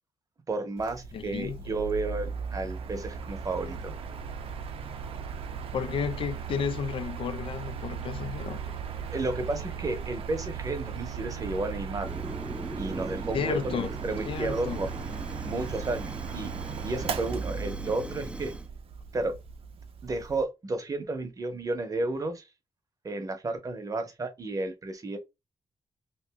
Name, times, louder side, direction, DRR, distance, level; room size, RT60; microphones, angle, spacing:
voice 1, 0.5-3.9 9.1-12.1 12.8-14.9 15.4-16.5 16.8-18.5 19.1-19.4 20.0-22.4 23.0-25.2, right 2 dB, 40° right, 0.8 m, -32 dB
Mechanical fan, 0.8-20.4, right 6 dB, 85° right, 0.5 m, -37 dB
voice 2, 1.1-1.6 5.7-8.6 13.3-13.9 14.2-14.9, left 7 dB, 70° left, 0.4 m, -32 dB
Fire, 12.0-18.7, right 2 dB, 10° right, 0.4 m, -40 dB
3.0 x 2.5 x 3.4 m
wide cardioid pair, 110°, 9 cm